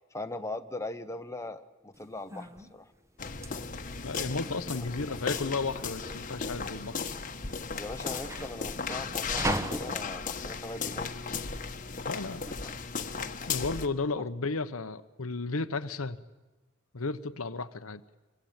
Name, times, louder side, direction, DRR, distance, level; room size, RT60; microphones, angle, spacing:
voice 1, 0.1-2.9 4.8-4.9 7.8-11.1 12.6-12.7 14.2-14.3, left 2 dB, 15° left, 7 dB, 1.1 m, -40 dB
sound 1, 1.9-12.0, right 1 dB, 15° right, 1.4 m, -39 dB
sound 2, 3.2-13.9, left 5 dB, 40° left, 1.4 m, -36 dB
voice 2, 4.0-7.0 12.0-12.4 13.5-16.2 16.9-18.0, left 3 dB, 80° left, 11 dB, 1.1 m, -33 dB
27.0 x 23.5 x 9.0 m, 1.1 s
head